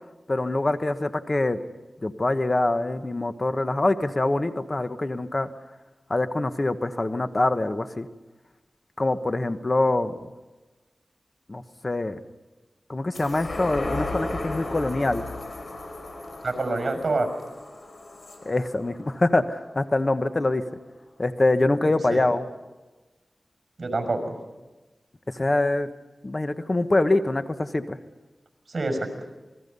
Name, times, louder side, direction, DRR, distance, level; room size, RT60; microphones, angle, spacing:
voice 1, 0.3-1.6 2.0-5.5 6.1-8.1 9.0-10.3 11.5-12.2 12.9-15.3 18.4-20.6 21.2-22.4 25.3-25.9 26.2-28.0, left 2 dB, 40° left, 9 dB, 1.2 m, -24 dB
sound 1, 13.1-19.9 20.4-20.5, left 2 dB, 60° left, 5.3 m, -35 dB
voice 2, 16.4-17.3 21.8-22.2 23.8-24.3 28.7-29.1, right 2 dB, 55° right, 5 dB, 6.1 m, -27 dB
28.5 x 21.0 x 5.5 m, 1.2 s
wide cardioid pair, 65°, 0 cm